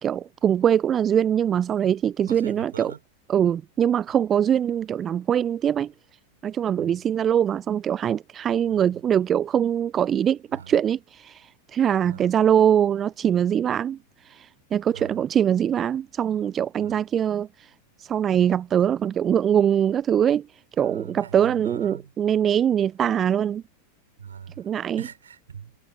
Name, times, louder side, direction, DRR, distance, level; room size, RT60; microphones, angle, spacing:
voice 1, 0.0-2.9 3.3-5.9 6.4-17.7 18.0-23.6 24.6-25.1, right 9 dB, 25° right, 0.4 m, -23 dB
voice 2, 2.3-3.0 6.7-7.0 8.6-8.9 10.5-10.7 12.0-12.3 14.9-15.2 16.8-17.0 20.8-22.1 24.2-24.7 25.0-25.8, right 7 dB, 70° right, 3.3 m, -42 dB
figure-of-eight pair, 90°, 0 cm